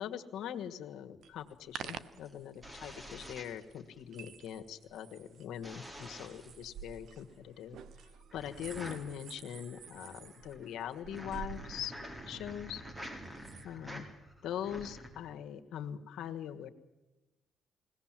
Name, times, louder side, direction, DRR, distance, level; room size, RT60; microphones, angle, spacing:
voice 1, 0.0-7.8 8.3-11.9 12.3-12.8 13.6-14.0 14.4-16.7, left 9 dB, 80° left, 7 dB, 1.5 m, -42 dB
sound 1, 1.2-13.6, right 8 dB, 70° right, 0.9 m, -51 dB
sound 2, 2.1-4.2 5.6-6.5 8.3-15.1, equal, 20° right, 4.1 m, -48 dB
21.5 x 17.5 x 7.5 m, 1.1 s
cardioid pair, 90°, 0 cm